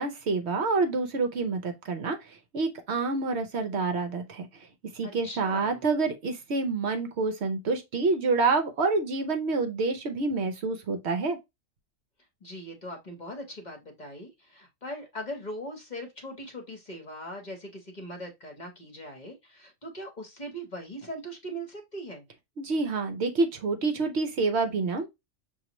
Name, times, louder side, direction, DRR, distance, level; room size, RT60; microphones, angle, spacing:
voice 1, 0.0-4.5 4.9-11.4 22.6-25.1, right 3 dB, 60° right, 0.8 m, -27 dB
voice 2, 5.0-5.9 12.4-22.3, equal, 35° left, 1.0 m, -40 dB
6.2 x 2.5 x 2.9 m
omnidirectional pair, 1.4 m